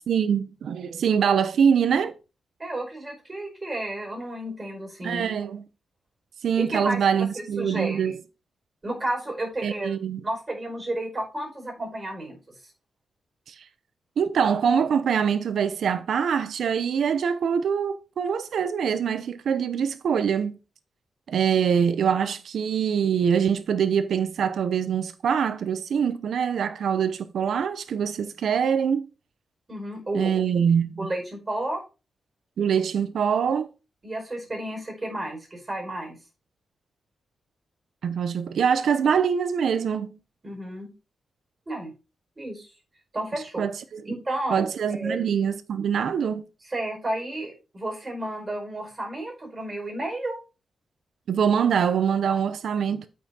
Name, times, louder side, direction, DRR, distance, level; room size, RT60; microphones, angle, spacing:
voice 1, 0.1-2.1 5.0-5.6 6.4-8.2 9.6-10.2 13.5-13.6 14.2-20.6 21.3-29.1 30.1-31.1 32.6-33.7 38.0-40.1 43.6-44.0 44.5-46.4 51.3-53.1, right 7 dB, 75° right, 0.8 m, -24 dB
voice 2, 2.6-5.3 6.6-7.0 7.3-8.2 8.8-10.0 10.2-12.4 29.7-30.3 31.0-31.8 34.0-36.2 40.4-40.9 41.7-41.9 42.4-42.7 43.1-43.6 44.0-45.2 46.7-50.4, right 1 dB, 25° right, 4.6 m, -32 dB
8.6 x 5.7 x 4.3 m
wide cardioid pair, 120°, 0 cm